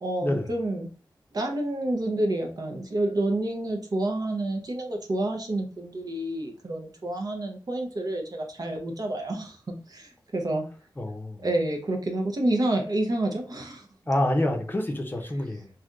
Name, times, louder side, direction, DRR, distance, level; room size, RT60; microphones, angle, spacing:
voice 1, 0.0-0.9 1.3-10.6 11.4-13.9, right 1 dB, 55° right, 0.7 m, -29 dB
voice 2, 11.0-11.5 14.1-15.7, left 1 dB, 25° left, 0.6 m, -27 dB
3.2 x 2.7 x 2.4 m
wide cardioid pair, 85°, 8 cm